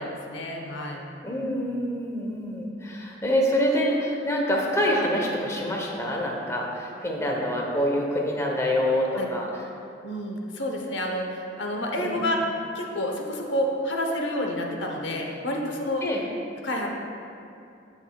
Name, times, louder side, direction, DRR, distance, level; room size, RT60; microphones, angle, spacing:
voice 1, 0.0-1.1 9.1-9.3 10.0-12.4 12.7-16.0 16.6-16.9, left 1 dB, 75° left, 1 dB, 0.9 m, -29 dB
voice 2, 1.2-9.5 12.0-12.2 16.0-16.2, equal, 15° left, -1 dB, 0.9 m, -26 dB
15.5 x 5.3 x 2.3 m, 2.5 s
head